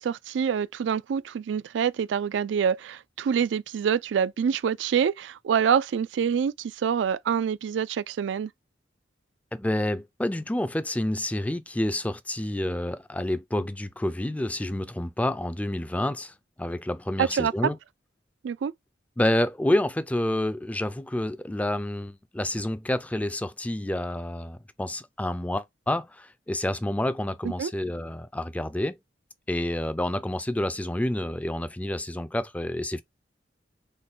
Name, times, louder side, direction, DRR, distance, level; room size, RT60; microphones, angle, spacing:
voice 1, 0.0-8.5 17.2-17.5 18.4-18.7 27.4-27.7, right 7 dB, 80° right, 0.3 m, -26 dB
voice 2, 9.5-17.8 19.2-29.0 29.5-33.0, left 1 dB, 10° left, 0.4 m, -29 dB
3.9 x 2.2 x 3.6 m
head